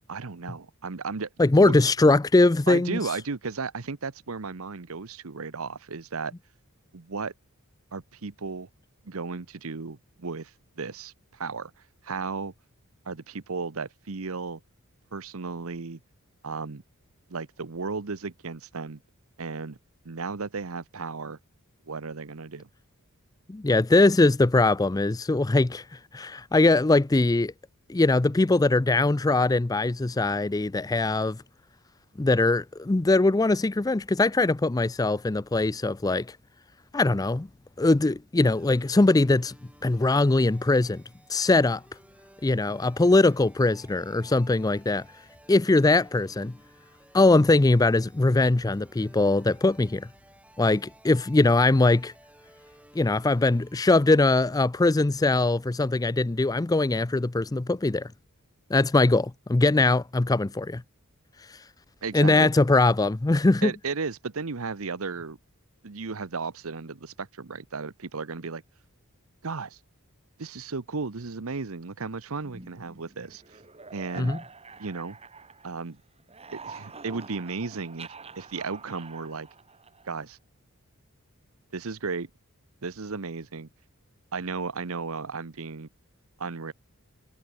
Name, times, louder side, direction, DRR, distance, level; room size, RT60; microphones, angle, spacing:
voice 1, 0.1-1.3 1.6-1.7 2.7-6.3 6.9-7.3 7.9-8.7 9.0-11.7 12.0-12.5 13.1-14.6 15.1-16.0 16.4-16.8 17.3-19.0 19.4-19.8 20.0-21.4 21.9-22.7 62.0-62.5 63.6-65.4 65.8-68.6 69.4-69.8 70.4-73.6 73.9-74.3 74.8-75.2 75.6-76.0 76.5-79.5 80.0-80.4 81.7-82.3 82.8-83.7 84.3-85.9 86.4-86.7, right 4 dB, 70° right, 0.9 m, -34 dB
voice 2, 1.4-3.0 23.5-25.8 26.1-27.5 27.9-31.4 32.2-36.3 36.9-37.5 37.8-39.5 39.8-41.0 41.3-41.8 42.4-45.0 45.5-46.5 47.1-50.1 50.6-52.1 53.0-58.1 58.7-60.8 62.1-63.7 74.2-74.4, left 2 dB, 15° left, 0.4 m, -21 dB
sound 1, 38.4-54.8, right 1 dB, 5° right, 3.2 m, -56 dB
sound 2, 72.4-75.9 76.2-80.2, right 4 dB, 30° right, 2.6 m, -46 dB
head